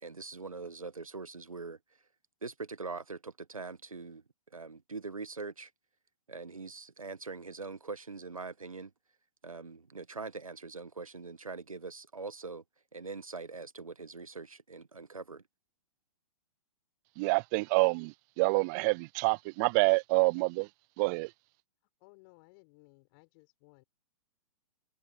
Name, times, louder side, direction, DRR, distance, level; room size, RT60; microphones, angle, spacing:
voice 1, 0.0-1.8 2.4-4.2 4.5-5.7 6.3-8.9 9.4-12.6 12.9-15.4, right 4 dB, 90° right, 1.8 m, -42 dB
voice 2, 17.2-20.7 21.0-21.3, right 29 dB, 35° right, 0.4 m, -27 dB
voice 3, 22.0-23.8, left 30 dB, 40° left, 5.9 m, -60 dB
figure-of-eight pair, 115°, 17 cm